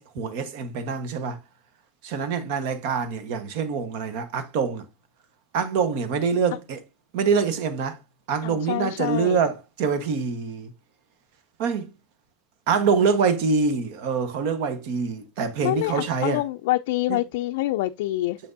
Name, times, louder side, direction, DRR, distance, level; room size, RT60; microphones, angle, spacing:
voice 1, 0.0-1.4 2.0-4.8 5.5-6.8 7.1-8.0 8.3-10.7 11.6-11.9 12.7-16.4 17.1-17.2, right 5 dB, 65° right, 1.1 m, -25 dB
voice 2, 8.4-9.4 15.6-18.4, left 16 dB, 85° left, 0.3 m, -26 dB
6.8 x 5.9 x 2.6 m
cardioid pair, 170°, 0 cm